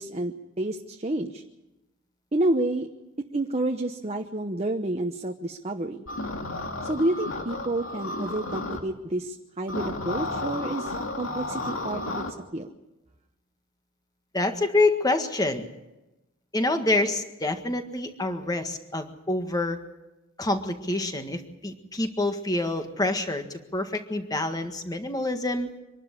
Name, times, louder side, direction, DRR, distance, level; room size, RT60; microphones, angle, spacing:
voice 1, 0.0-1.4 2.3-2.9 3.3-6.0 6.8-12.2 12.5-12.7, right 1 dB, 30° right, 4 dB, 1.0 m, -29 dB
sound 1, 6.1-8.8 9.7-12.3, left 2 dB, 80° left, 2.2 m, -32 dB
voice 2, 14.3-15.7 16.5-19.8 20.4-25.7, left 2 dB, 20° left, 7 dB, 1.7 m, -27 dB
25.0 x 12.0 x 9.8 m, 1.0 s
head